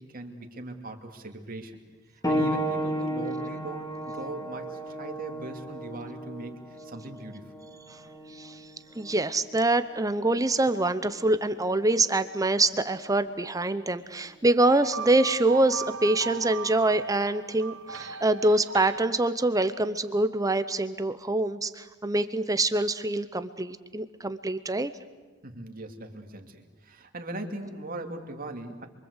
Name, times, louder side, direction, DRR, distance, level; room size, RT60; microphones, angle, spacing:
voice 1, 0.0-1.8 2.1-7.6 25.4-28.9, right 1 dB, 45° right, 4 dB, 2.7 m, -40 dB
sound 1, 2.2-12.5 13.4-13.5 14.3-14.4, equal, 20° left, 2.9 m, -35 dB
voice 2, 9.0-24.9, right 2 dB, 15° right, 12 dB, 0.8 m, -25 dB
sound 2, 14.6-19.0, right 6 dB, 70° right, 1.5 m, -38 dB
27.5 x 24.0 x 8.1 m, 1.3 s
head